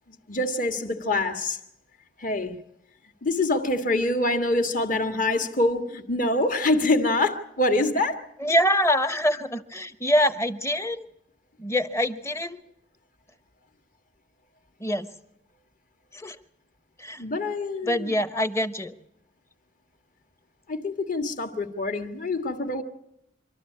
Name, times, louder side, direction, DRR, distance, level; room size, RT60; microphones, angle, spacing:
voice 1, 0.3-1.6 2.2-2.6 3.2-8.2 17.2-18.1 20.7-22.8, left 2 dB, 45° left, 7 dB, 1.8 m, -25 dB
voice 2, 8.4-11.1 11.6-12.6 14.8-15.1 16.1-16.4 17.0-17.2 17.8-18.9, equal, 15° left, 11 dB, 0.9 m, -25 dB
25.5 x 13.0 x 8.6 m, 0.80 s
head